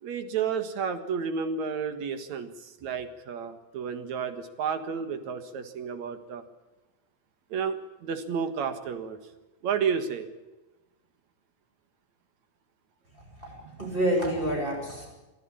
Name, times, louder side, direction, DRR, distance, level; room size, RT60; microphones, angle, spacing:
voice 1, 0.0-6.4 7.5-9.2 9.6-10.3, right 6 dB, 70° right, 9 dB, 2.9 m, -31 dB
voice 2, 13.1-15.1, right 1 dB, 15° right, 0 dB, 7.3 m, -29 dB
23.5 x 13.5 x 8.9 m, 1.1 s
omnidirectional pair, 3.4 m